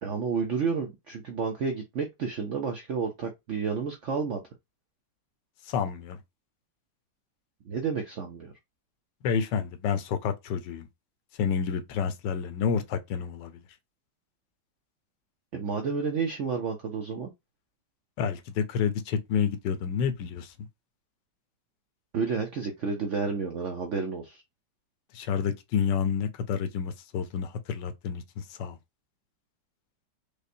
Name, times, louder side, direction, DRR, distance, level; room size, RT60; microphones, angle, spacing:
voice 1, 0.0-4.4 7.6-8.5 15.5-17.3 22.1-24.4, right 5 dB, 70° right, 0.7 m, -30 dB
voice 2, 5.6-6.2 9.2-10.9 11.3-13.6 18.2-20.5 25.1-28.8, left 6 dB, 80° left, 1.3 m, -29 dB
5.0 x 2.1 x 2.6 m
omnidirectional pair, 1.9 m